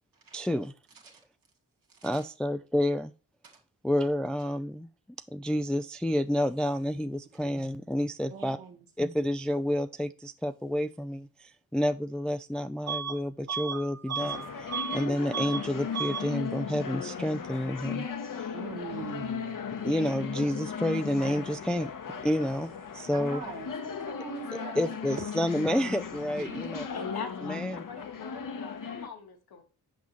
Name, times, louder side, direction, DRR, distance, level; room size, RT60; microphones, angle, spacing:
voice 1, 0.3-0.7 2.0-3.1 3.8-4.9 5.3-8.6 9.0-18.1 18.4-18.5 19.8-21.9 22.2-23.4 24.8-26.8 27.4-27.8, left 1 dB, 5° left, 0.3 m, -29 dB
voice 2, 1.9-2.2 3.4-3.6 7.3-7.5 8.3-8.9 18.5-19.7 23.1-25.2 25.7-25.8 26.4-26.8 28.2-28.3, right 5 dB, 70° right, 1.8 m, -43 dB
Bus / Alarm, 12.9-13.2 13.5-15.0 15.3-15.7 15.9-16.3, right 6 dB, 45° right, 0.7 m, -34 dB
sound 1, 14.2-29.1, left 6 dB, 60° left, 0.9 m, -37 dB
voice 3, 26.9-29.6, left 5 dB, 85° left, 1.2 m, -41 dB
6.2 x 5.5 x 3.0 m
cardioid pair, 45°, 36 cm